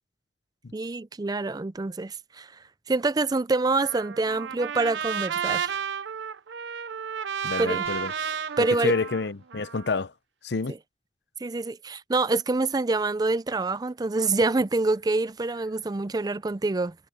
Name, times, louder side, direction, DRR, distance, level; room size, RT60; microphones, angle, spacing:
voice 1, 0.7-2.5 2.9-5.8 7.6-7.9 8.6-8.9 11.4-17.0, right 3 dB, 20° right, 0.4 m, -26 dB
Trumpet, 3.8-10.0, right 7 dB, 80° right, 0.6 m, -32 dB
voice 2, 7.4-8.1 8.6-10.1 10.4-10.7, left 4 dB, 65° left, 0.7 m, -28 dB
sound 1, 7.9-9.6, left 5 dB, 35° left, 3.8 m, -51 dB
head